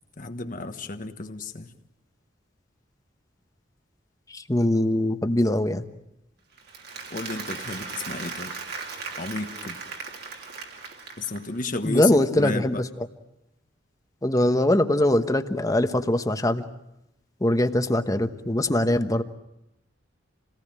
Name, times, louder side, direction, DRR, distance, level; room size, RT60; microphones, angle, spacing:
voice 1, 0.2-1.7 7.1-8.5 9.2-9.8 11.2-12.8, left 3 dB, 45° left, 7 dB, 1.4 m, -32 dB
voice 2, 4.3-5.8 11.8-12.7 14.2-16.6 17.4-19.2, left 1 dB, 20° left, 9 dB, 1.2 m, -22 dB
Applause, 6.6-11.6, right 4 dB, 60° right, 3.0 m, -37 dB
28.0 x 18.5 x 8.8 m, 0.88 s
head